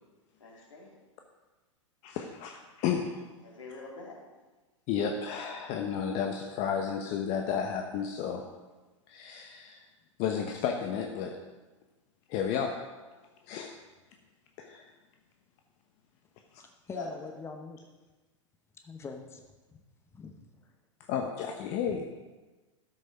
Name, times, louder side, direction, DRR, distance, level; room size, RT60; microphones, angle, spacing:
voice 1, 0.4-0.9 3.4-4.2 16.9-17.1, left 4 dB, 75° left, -2 dB, 3.2 m, -43 dB
voice 2, 2.0-3.3 4.9-8.4 9.1-9.8 10.2-11.4 12.3-12.8 13.5-13.7 14.6-14.9 21.1-22.1, left 7 dB, 40° left, 3 dB, 1.0 m, -32 dB
voice 3, 16.6-17.8 18.8-19.4 20.1-20.5, left 4 dB, 15° left, 4 dB, 0.9 m, -43 dB
13.0 x 6.5 x 5.2 m, 1.2 s
figure-of-eight pair, 100°, 16 cm